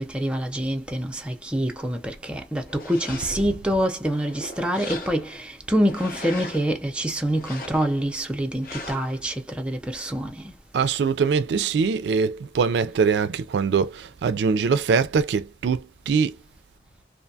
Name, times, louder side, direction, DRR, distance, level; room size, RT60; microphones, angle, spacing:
voice 1, 0.0-10.5, equal, 5° right, 0.4 m, -26 dB
sound 1, 2.7-3.6 4.1-5.4 5.8-6.7 7.3-8.1 8.6-9.2, left 2 dB, 50° left, 0.7 m, -39 dB
voice 2, 10.7-16.4, right 5 dB, 70° right, 0.3 m, -23 dB
2.6 x 2.2 x 2.6 m
head